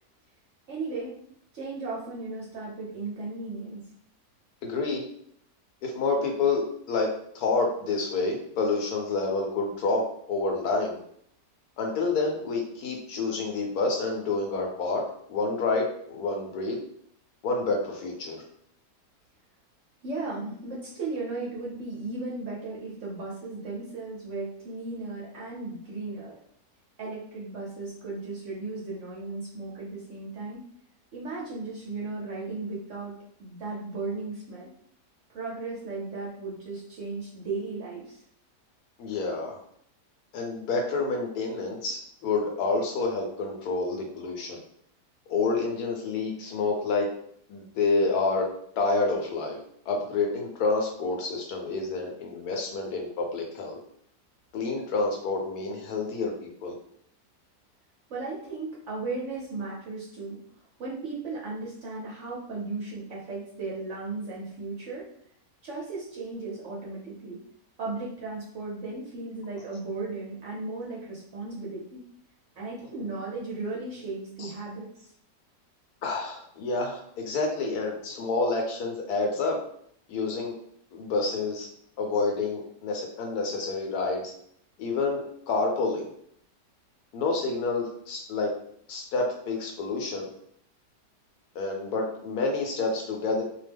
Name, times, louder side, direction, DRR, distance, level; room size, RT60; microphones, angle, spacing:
voice 1, 0.7-1.2 1.5-3.8 20.0-26.4 27.0-30.6 31.1-33.1 33.4-34.7 35.3-38.2 58.1-60.4 60.8-65.1 65.6-67.4 67.8-72.0 72.6-75.1, right 3 dB, 60° right, -5 dB, 0.9 m, -36 dB
voice 2, 4.6-5.0 5.8-11.0 11.8-16.8 17.4-18.4 39.0-39.6 40.3-44.6 45.3-47.1 47.5-48.5 48.8-49.6 49.9-53.8 54.5-56.8 74.4-74.5 76.0-79.6 80.1-80.5 80.9-81.7 82.0-84.3 84.8-86.1 87.1-88.5 88.9-90.3 91.5-93.4, left 3 dB, 70° left, 1 dB, 1.1 m, -28 dB
2.8 x 2.0 x 3.3 m, 0.66 s
omnidirectional pair, 1.8 m